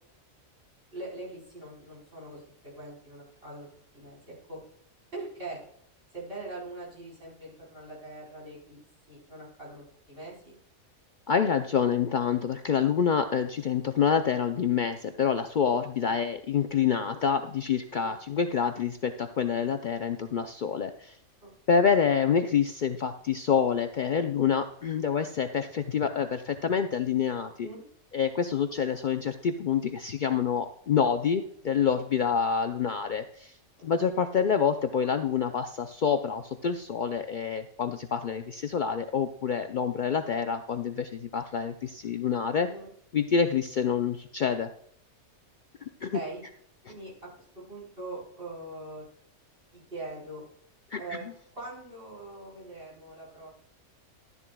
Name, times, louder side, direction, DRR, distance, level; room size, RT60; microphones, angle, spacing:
voice 1, 0.9-3.7 3.9-4.6 5.1-5.6 6.1-8.8 9.1-10.6 16.0-16.2 17.9-18.2 21.4-21.5 27.6-27.8 33.8-33.9 42.6-42.9 46.1-46.4 46.9-49.0 49.7-50.4 51.0-51.2 51.5-53.5, right 2 dB, 40° right, -5 dB, 4.5 m, -42 dB
voice 2, 11.3-21.1 21.7-27.7 28.1-33.5 33.8-42.7 43.1-44.7 46.0-46.2 50.9-51.3, left 7 dB, 85° left, 8 dB, 0.4 m, -27 dB
12.0 x 11.0 x 2.2 m, 0.67 s
omnidirectional pair, 1.5 m